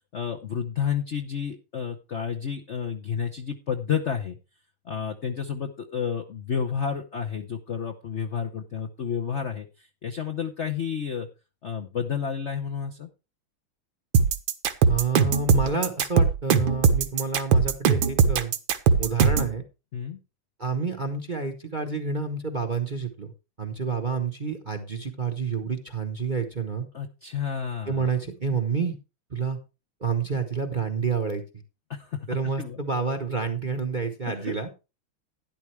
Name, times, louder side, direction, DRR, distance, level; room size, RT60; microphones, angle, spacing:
voice 1, 0.1-4.4 4.9-9.7 10.0-11.3 11.6-13.1 19.9-20.2 26.9-28.1 31.9-32.2 32.6-32.8 34.3-34.6, left 7 dB, 55° left, 4 dB, 0.7 m, -30 dB
sound 1, 14.1-19.5, right 6 dB, 70° right, 1.7 m, -20 dB
voice 2, 14.9-18.5 19.0-19.6 20.6-23.3 23.6-26.8 27.9-29.0 29.3-29.6 30.0-31.4 32.3-34.7, right 5 dB, 35° right, 6 dB, 0.8 m, -29 dB
12.0 x 11.0 x 3.3 m, 0.29 s
omnidirectional pair, 2.3 m